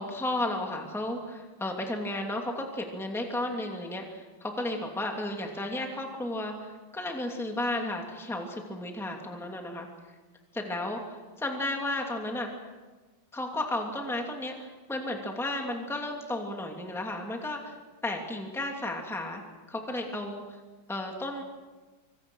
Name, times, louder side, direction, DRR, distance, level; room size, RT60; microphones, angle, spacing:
voice 1, 0.0-9.9 10.5-12.5 13.3-17.7 18.0-19.4 19.7-20.6 20.9-21.4, left 1 dB, ahead, 2 dB, 2.6 m, -33 dB
25.5 x 25.5 x 6.4 m, 1.3 s
omnidirectional pair, 2.2 m